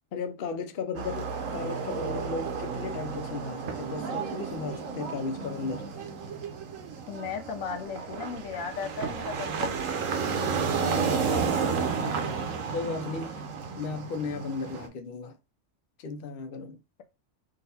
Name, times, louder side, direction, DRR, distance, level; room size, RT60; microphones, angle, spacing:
voice 1, 0.1-5.8 10.8-11.8 12.7-13.4 13.8-15.3 16.0-16.8, left 4 dB, 55° left, 0.7 m, -35 dB
sound 1, 0.9-14.9, right 5 dB, 80° right, 1.1 m, -32 dB
voice 2, 7.1-9.7 16.6-17.0, left 6 dB, 85° left, 1.1 m, -36 dB
3.9 x 2.5 x 4.0 m
omnidirectional pair, 1.4 m